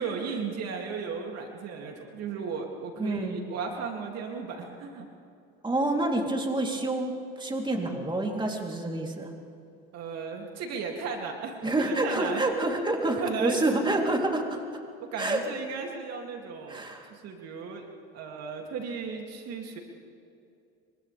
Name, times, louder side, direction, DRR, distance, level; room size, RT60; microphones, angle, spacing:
voice 1, 0.0-5.1 9.9-12.4 13.2-13.6 15.0-17.9 18.1-19.8, right 5 dB, 55° right, 1 dB, 2.8 m, -35 dB
voice 2, 3.0-3.4 5.6-9.3 11.6-14.6 15.2-15.4 16.7-17.1, right 2 dB, 15° right, 0 dB, 3.4 m, -28 dB
30.0 x 25.5 x 3.5 m, 2.5 s
supercardioid pair, 85°, 31 cm